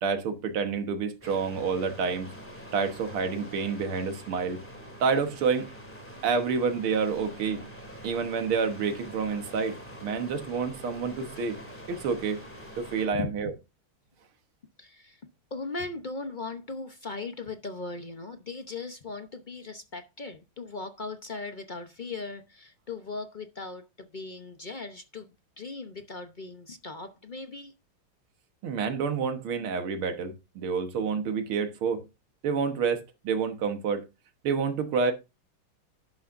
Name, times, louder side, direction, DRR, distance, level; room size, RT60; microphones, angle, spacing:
voice 1, 0.0-2.3 2.7-4.6 5.0-5.7 6.2-7.6 8.0-11.6 11.9-12.4 12.8-13.5 28.6-32.1 32.4-34.0 34.4-35.1, right 5 dB, 90° right, 2.2 m, -28 dB
sound 1, 1.2-13.1, equal, 5° left, 2.4 m, -45 dB
voice 2, 14.8-15.2 15.5-25.3 25.6-27.7, left 3 dB, 75° left, 0.4 m, -38 dB
11.5 x 11.0 x 2.6 m
omnidirectional pair, 2.3 m